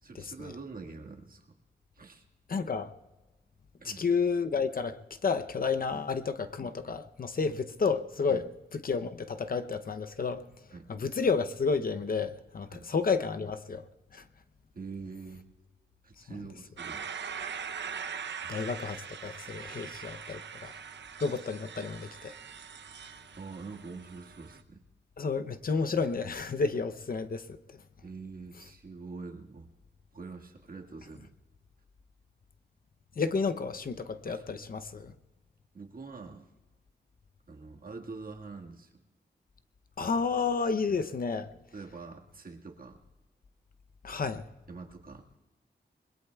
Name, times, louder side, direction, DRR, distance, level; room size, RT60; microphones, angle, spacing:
voice 1, 0.0-1.6 2.0-2.2 3.8-4.0 5.9-6.0 8.3-8.5 10.7-10.9 12.7-12.9 14.7-15.5 16.0-17.1 18.4-18.6 23.4-24.8 28.0-29.7 30.1-31.3 34.3-34.4 35.7-36.5 37.5-39.0 40.9-41.0 41.7-43.0 44.7-45.3, right 4 dB, 50° right, 1.8 m, -45 dB
voice 2, 2.5-2.9 3.8-8.4 8.7-10.4 10.9-13.8 14.1-14.2 18.5-20.7 21.2-22.3 25.2-27.8 33.2-35.1 40.0-41.5 44.0-44.5, left 5 dB, 55° left, 0.7 m, -31 dB
sound 1, 16.8-24.6, right 7 dB, 80° right, 0.7 m, -42 dB
29.0 x 21.0 x 2.3 m
wide cardioid pair, 145°, 18 cm